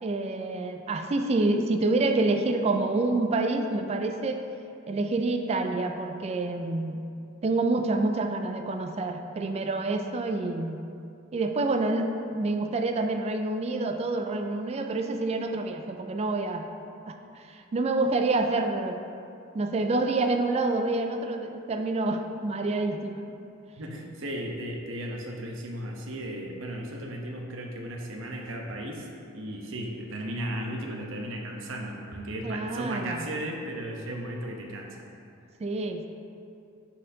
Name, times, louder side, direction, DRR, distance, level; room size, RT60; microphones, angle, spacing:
voice 1, 0.0-4.4 4.9-7.0 7.4-10.8 11.3-16.6 17.1-19.0 19.5-23.3 32.4-33.2 35.6-36.1, right 2 dB, 30° right, 5 dB, 0.3 m, -27 dB
voice 2, 23.8-35.0, right 1 dB, 70° right, 1 dB, 0.8 m, -35 dB
10.5 x 4.3 x 2.7 m, 2.5 s
head